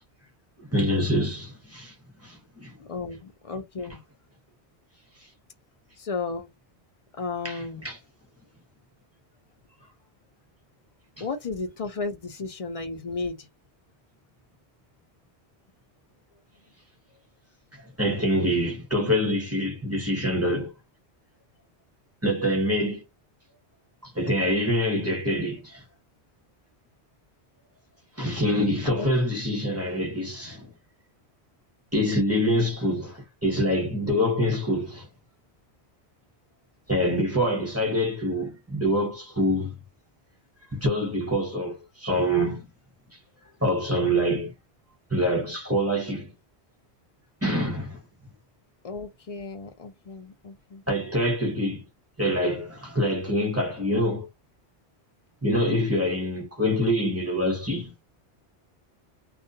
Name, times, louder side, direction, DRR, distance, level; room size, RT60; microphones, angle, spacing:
voice 1, 0.6-1.9 2.2-2.7 7.4-8.0 17.7-20.7 22.2-23.0 24.0-25.8 28.2-30.7 31.9-35.1 36.9-39.7 40.7-42.7 43.6-44.5 45.1-46.3 47.4-48.0 50.9-51.9 52.2-54.3 55.4-57.9, equal, 15° right, 0.8 m, -25 dB
voice 2, 2.8-4.0 6.0-6.5 7.2-7.8 11.2-13.5 28.8-29.1 48.8-50.8, left 4 dB, 45° left, 0.5 m, -34 dB
2.3 x 2.3 x 2.7 m
omnidirectional pair, 1.1 m